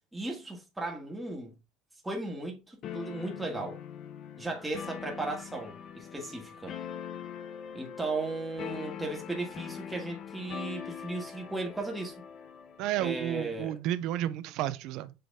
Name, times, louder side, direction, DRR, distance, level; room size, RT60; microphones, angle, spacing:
voice 1, 0.1-1.6 2.0-3.8 4.4-6.8 7.7-12.2 13.0-13.8, right 2 dB, 5° right, 1.9 m, -36 dB
sound 1, 2.8-12.9, left 8 dB, 40° left, 0.7 m, -42 dB
voice 2, 12.8-15.1, right 12 dB, 55° right, 0.7 m, -32 dB
7.9 x 3.3 x 3.6 m
supercardioid pair, 135°, 0 cm